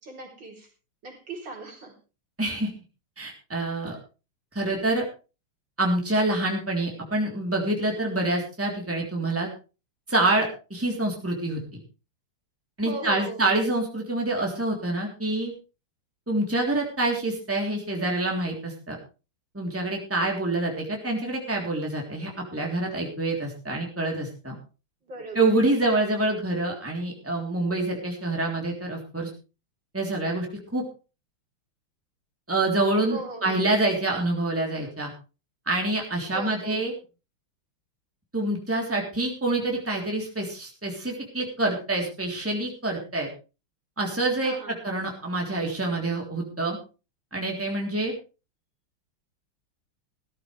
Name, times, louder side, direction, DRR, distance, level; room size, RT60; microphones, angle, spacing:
voice 1, 0.0-0.7 1.0-1.9 12.8-13.5 25.0-25.6 33.1-33.7 36.3-36.9 44.4-44.8, right 2 dB, 60° right, -1 dB, 4.5 m, -38 dB
voice 2, 2.4-2.7 3.2-4.0 4.5-5.0 5.8-9.5 10.1-11.8 12.8-15.5 16.3-19.0 19.5-24.5 25.3-29.3 29.9-30.5 30.7-30.8 32.5-35.1 35.7-36.9 38.3-43.3 44.0-46.8 47.3-48.1, right 2 dB, 5° right, 0 dB, 3.3 m, -26 dB
17.0 x 13.5 x 3.4 m, 0.33 s
omnidirectional pair, 2.3 m